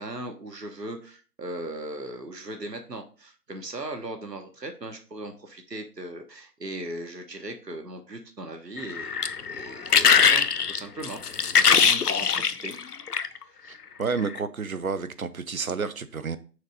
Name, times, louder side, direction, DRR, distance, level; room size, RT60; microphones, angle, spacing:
voice 1, 0.0-12.7 13.4-13.8, right 1 dB, 90° right, 1.3 m, -38 dB
sound 1, 8.8-13.4 14.2-14.4, left 6 dB, 70° left, 0.6 m, -21 dB
voice 2, 14.0-16.4, right 5 dB, 60° right, 0.7 m, -30 dB
6.4 x 3.2 x 5.1 m
figure-of-eight pair, 160°, 48 cm